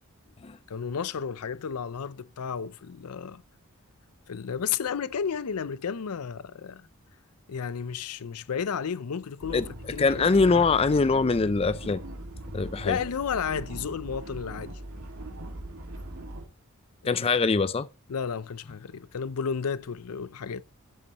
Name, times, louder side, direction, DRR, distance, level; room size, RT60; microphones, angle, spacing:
voice 1, 0.7-3.4 4.3-6.9 7.5-10.6 12.8-14.7 17.0-17.3 18.1-20.6, left 6 dB, 90° left, 0.5 m, -32 dB
sound 1, 9.4-16.5, right 1 dB, 80° right, 2.1 m, -40 dB
voice 2, 9.5-12.0 12.5-13.0 17.1-17.9, left 4 dB, 25° left, 0.4 m, -23 dB
12.0 x 8.4 x 2.9 m
head